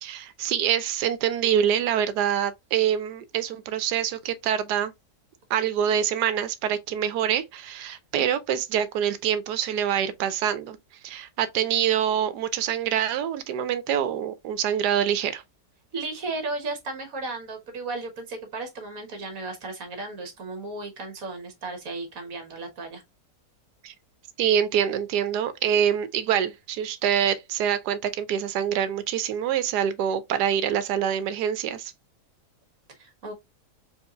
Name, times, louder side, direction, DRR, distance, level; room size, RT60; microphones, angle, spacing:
voice 1, 0.0-4.9 5.5-10.8 11.0-15.4 23.8-23.9 24.4-31.9, right 9 dB, 80° right, 1.2 m, -25 dB
voice 2, 15.9-23.0 33.0-33.3, right 3 dB, 60° right, 1.6 m, -35 dB
4.5 x 3.1 x 2.4 m
omnidirectional pair, 1.7 m